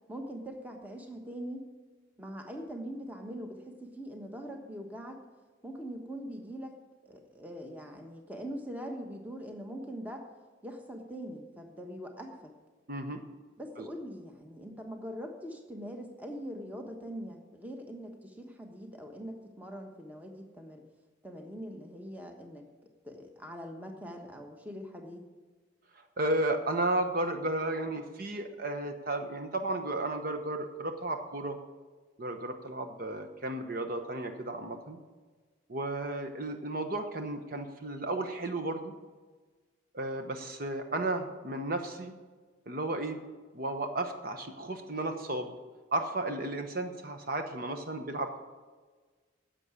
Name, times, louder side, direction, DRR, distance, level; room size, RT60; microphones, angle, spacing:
voice 1, 0.1-1.7 2.2-5.2 5.6-6.8 7.0-10.3 10.6-12.5 13.6-20.8 21.2-22.7 23.0-25.2, equal, 10° right, 3 dB, 1.2 m, -42 dB
voice 2, 12.9-13.2 26.0-31.6 32.2-35.0 35.7-38.9 39.9-42.1 42.7-43.2 43.5-45.5 45.9-48.4, right 2 dB, 45° right, 6 dB, 0.9 m, -33 dB
10.5 x 7.5 x 8.3 m, 1.4 s
head